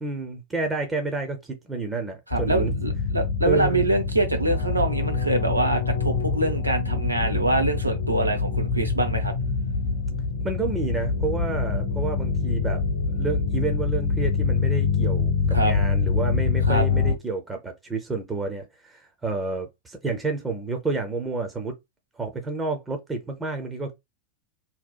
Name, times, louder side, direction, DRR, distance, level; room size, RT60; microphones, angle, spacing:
voice 1, 0.0-2.7 3.4-3.9 10.4-12.8 13.1-21.7 22.2-23.9, right 3 dB, 15° right, 0.4 m, -30 dB
sound 1, 2.3-17.1, left 5 dB, 60° left, 0.8 m, -25 dB
voice 2, 2.3-9.3 15.5-15.7 16.7-16.9, right 2 dB, 80° right, 0.5 m, -25 dB
2.7 x 2.0 x 2.2 m
figure-of-eight pair, 90°, 0 cm